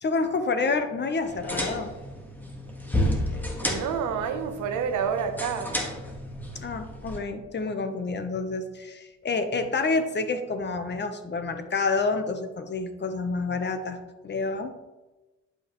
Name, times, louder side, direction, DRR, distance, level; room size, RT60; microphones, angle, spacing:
voice 1, 0.0-1.9 6.6-14.7, left 3 dB, 35° left, 7 dB, 1.0 m, -28 dB
sound 1, 1.2-7.2, equal, 5° left, 1.6 m, -32 dB
voice 2, 3.6-5.7, right 7 dB, 80° right, 8 dB, 1.0 m, -28 dB
11.0 x 5.4 x 3.1 m, 1.1 s
cardioid pair, 90°, 30 cm